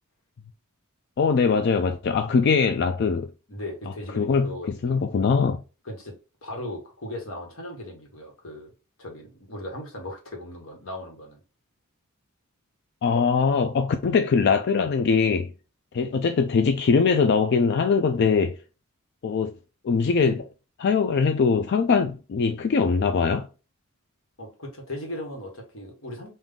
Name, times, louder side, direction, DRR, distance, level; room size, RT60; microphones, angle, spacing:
voice 1, 1.2-3.3 4.2-4.5 4.8-5.6 13.0-15.5 15.9-18.6 19.2-19.6 19.8-20.5 20.8-23.5, left 5 dB, 55° left, 0.4 m, -22 dB
voice 2, 3.5-5.0 5.8-6.1 6.4-8.7 9.0-11.4 24.4-26.3, left 1 dB, 75° left, 1.5 m, -37 dB
3.6 x 2.6 x 3.6 m
head